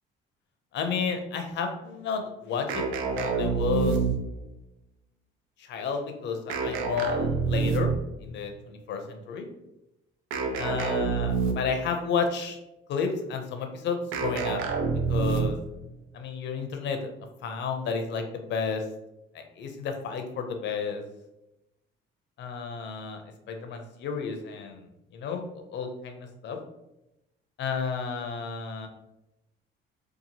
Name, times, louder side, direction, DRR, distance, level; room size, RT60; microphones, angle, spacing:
voice 1, 0.7-4.0 5.6-7.9 8.2-9.5 10.6-12.6 12.9-14.6 15.1-15.6 16.1-17.0 17.4-18.8 19.3-21.0 22.4-23.2 23.5-24.8 25.1-26.6 27.6-28.9, left 5 dB, 60° left, 5 dB, 0.5 m, -31 dB
sound 1, 2.7-4.5 6.5-8.2 10.3-11.8 14.1-15.7, right 5 dB, 85° right, 0.5 m, -27 dB
2.8 x 2.4 x 2.7 m, 0.91 s
cardioid pair, 115°, 20 cm